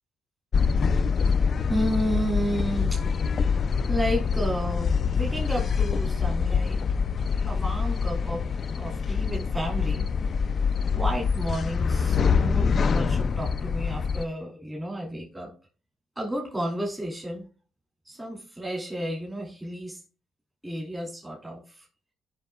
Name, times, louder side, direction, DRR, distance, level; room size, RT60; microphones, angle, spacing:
sound 1, 0.5-14.3, left 5 dB, 50° left, 0.3 m, -25 dB
voice 1, 1.7-3.0 3.9-6.8 7.5-8.4 8.8-10.1 10.9-15.5 16.2-17.5 18.1-20.0 20.6-21.9, equal, 15° right, -2 dB, 2.7 m, -32 dB
15.0 x 5.6 x 2.3 m, 0.37 s
cardioid pair, 90°, 0 cm